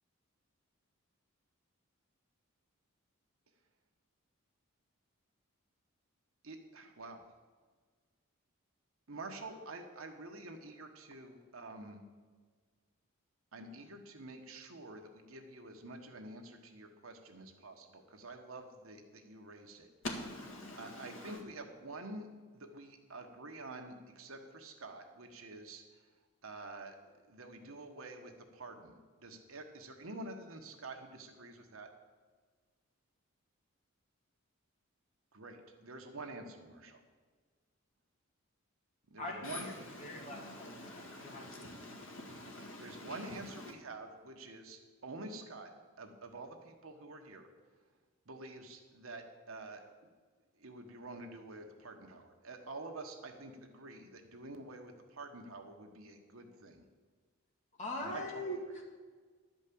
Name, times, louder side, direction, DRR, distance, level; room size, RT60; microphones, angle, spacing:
voice 1, 6.4-7.2 9.1-12.0 13.5-19.9 20.8-22.3 22.5-25.8 26.4-27.0 27.3-28.9 29.2-31.9 35.3-37.0 39.1-39.7 42.8-45.7 46.0-47.5 48.3-49.8 50.6-56.8 58.0-58.6, right 2 dB, 70° right, 4 dB, 1.3 m, -48 dB
voice 2, 20.0-21.4 39.4-43.7, left 2 dB, 65° left, 1 dB, 2.0 m, -46 dB
voice 3, 39.2-42.0 57.8-58.8, left 1 dB, 30° left, -2 dB, 2.2 m, -43 dB
11.5 x 5.3 x 8.6 m, 1.5 s
head